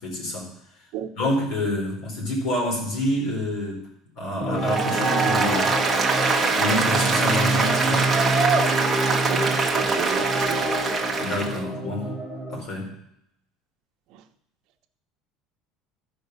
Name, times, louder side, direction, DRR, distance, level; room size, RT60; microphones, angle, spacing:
voice 1, 0.0-0.5 1.2-3.9 4.2-5.8 6.6-8.1 11.2-12.1 12.5-12.9, left 1 dB, 60° left, 0 dB, 4.1 m, -27 dB
sound 1, 4.4-12.6, right 1 dB, 5° left, 0.9 m, -28 dB
Applause, 4.6-11.6, right 4 dB, 10° right, 1.2 m, -23 dB
voice 2, 9.1-10.7, right 10 dB, 55° right, 5 dB, 0.9 m, -33 dB
13.5 x 5.3 x 6.7 m, 0.77 s
cardioid pair, 165°, 0 cm